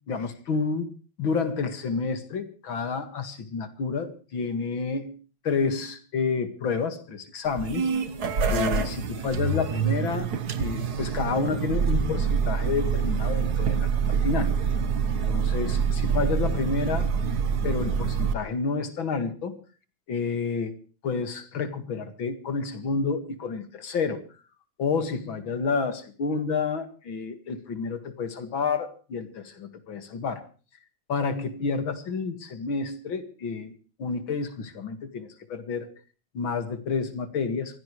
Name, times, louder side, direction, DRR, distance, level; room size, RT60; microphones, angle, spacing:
voice 1, 0.1-0.9 1.2-5.1 5.4-7.8 8.5-10.3 10.6-13.9 14.2-14.5 15.3-17.1 17.6-19.5 20.1-20.7 21.0-24.2 24.8-30.4 31.1-33.7 34.0-35.9 36.3-37.8, left 5 dB, 75° left, 9 dB, 2.7 m, -29 dB
sound 1, 7.5-18.3, right 6 dB, 55° right, 1.7 m, -26 dB
24.0 x 16.0 x 3.2 m, 0.37 s
omnidirectional pair, 2.2 m